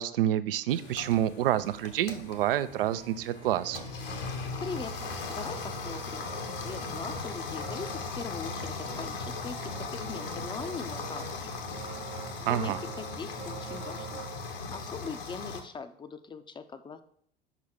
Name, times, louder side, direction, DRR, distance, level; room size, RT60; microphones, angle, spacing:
voice 1, 0.0-3.8 12.4-12.8, right 12 dB, 70° right, 14 dB, 0.5 m, -28 dB
sound 1, 0.7-15.6, left 4 dB, 70° left, 1.2 m, -38 dB
sound 2, 2.7-14.5, right 8 dB, 25° right, 0.8 m, -46 dB
voice 2, 4.6-6.3 6.6-11.5 12.4-14.3 14.7-17.0, left 5 dB, 15° left, 10 dB, 0.6 m, -41 dB
5.5 x 4.9 x 5.9 m, 0.63 s
figure-of-eight pair, 75°, 30 cm